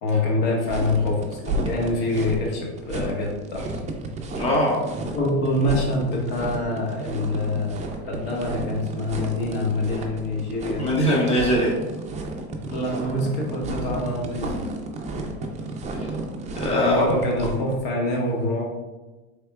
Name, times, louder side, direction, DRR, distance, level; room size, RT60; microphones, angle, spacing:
voice 1, 0.0-3.6 5.0-7.7 8.0-10.9 12.7-14.6 16.7-18.6, left 2 dB, 60° left, -1 dB, 1.2 m, -25 dB
sound 1, 0.7-17.7, right 2 dB, 20° right, 0.5 m, -32 dB
voice 2, 4.3-4.8 10.8-11.7 16.5-17.2, equal, 20° left, -4 dB, 1.1 m, -21 dB
4.4 x 3.5 x 2.3 m, 1.2 s
supercardioid pair, 120°, 33 cm